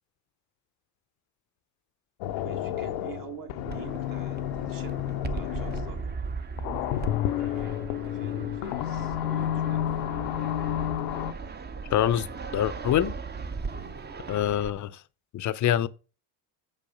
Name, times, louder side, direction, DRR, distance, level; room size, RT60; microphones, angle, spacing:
sound 1, 2.2-6.1 6.6-11.3, left 12 dB, 85° left, 0.7 m, -30 dB
voice 1, 2.4-5.0 5.3-6.2 7.3-9.8 13.7-14.0, right 8 dB, 45° right, 1.5 m, -46 dB
Fixed-wing aircraft airplane, 3.7-14.7, right 4 dB, 25° right, 0.6 m, -38 dB
voice 2, 11.9-13.2 14.3-15.0 15.3-15.9, left 11 dB, 40° left, 0.5 m, -25 dB
6.2 x 5.4 x 5.0 m
supercardioid pair, 85°, 46 cm